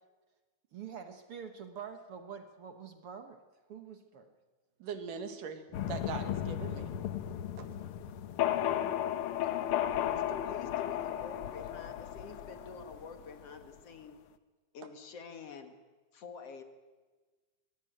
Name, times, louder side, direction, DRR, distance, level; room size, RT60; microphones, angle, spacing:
voice 1, 0.7-3.4 3.7-4.3 8.5-9.0 9.3-9.6 9.9-10.2, right 7 dB, 55° right, 7 dB, 1.7 m, -47 dB
voice 2, 4.8-6.9 7.6-7.7, right 6 dB, 85° right, 8 dB, 3.5 m, -41 dB
sound 1, 5.7-13.4, left 11 dB, 70° left, 1.3 m, -34 dB
voice 3, 10.0-14.2 14.7-15.7 16.1-16.6, left 4 dB, 55° left, 7 dB, 2.4 m, -47 dB
23.0 x 19.0 x 9.3 m, 1.3 s
omnidirectional pair, 3.7 m